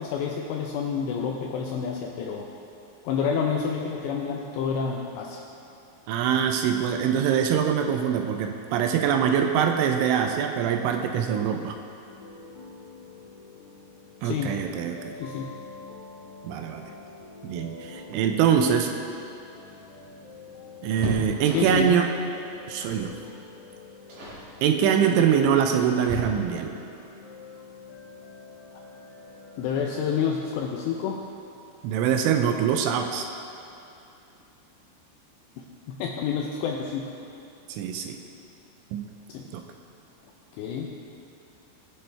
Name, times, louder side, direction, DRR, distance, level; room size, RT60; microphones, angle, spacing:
voice 1, 0.0-2.5 3.0-5.4 14.2-14.6 15.2-15.5 21.5-22.0 25.1-25.2 29.6-31.2 35.6-37.1 39.3-39.5 40.6-40.9, left 6 dB, 85° left, 0 dB, 2.5 m, -29 dB
voice 2, 6.1-11.8 14.2-15.1 16.4-16.8 17.4-18.9 20.8-22.1 22.7-23.2 24.6-26.8 31.8-33.3 37.7-38.2 38.9-39.0 39.5-39.6, right 8 dB, 85° right, 5 dB, 2.9 m, -24 dB
sound 1, 12.0-30.3, left 4 dB, 55° left, 2.2 m, -47 dB
sound 2, 19.3-22.0 22.8-23.1 23.4-23.7 24.1-24.5 25.3-26.8 28.5-28.6 29.0-29.1 30.3-30.7 31.0-31.1 31.4-31.6, right 1 dB, 55° right, 2.4 m, -36 dB
20.5 x 6.9 x 3.3 m, 2.8 s
omnidirectional pair, 5.7 m